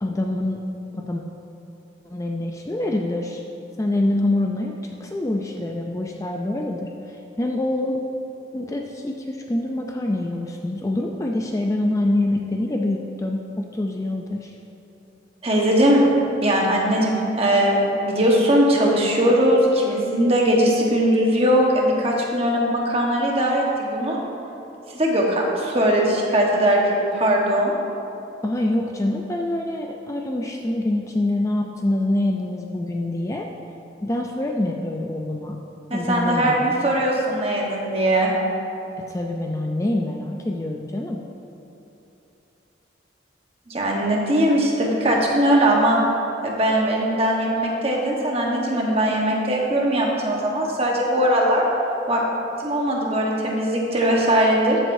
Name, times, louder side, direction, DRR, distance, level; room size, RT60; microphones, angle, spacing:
voice 1, 0.0-0.6 0.9-1.2 2.0-3.4 3.8-4.7 5.0-8.0 8.5-14.5 28.4-33.5 34.0-35.6 35.9-36.7 39.0-41.2, left 1 dB, 15° left, 1 dB, 0.4 m, -25 dB
voice 2, 15.4-16.0 16.4-24.2 24.9-27.7 35.9-38.3 43.7-46.0 46.4-51.7 52.1-52.2 52.6-54.8, right 1 dB, 30° right, -2 dB, 1.2 m, -20 dB
14.0 x 7.7 x 2.7 m, 2.9 s
head